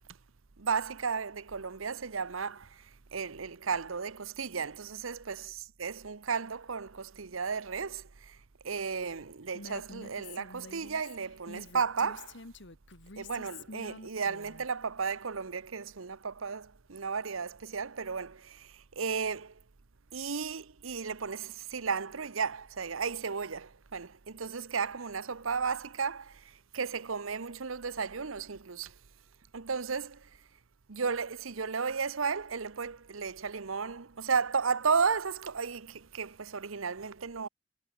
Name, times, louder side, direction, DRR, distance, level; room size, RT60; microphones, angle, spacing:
voice 1, 0.6-8.4 8.6-12.4 13.2-19.5 20.1-28.9 29.5-30.3 30.9-37.5, right 5 dB, 90° right, 1.0 m, -34 dB
Female speech woman speaking, 9.5-14.7, left 3 dB, 60° left, 2.1 m, -48 dB
head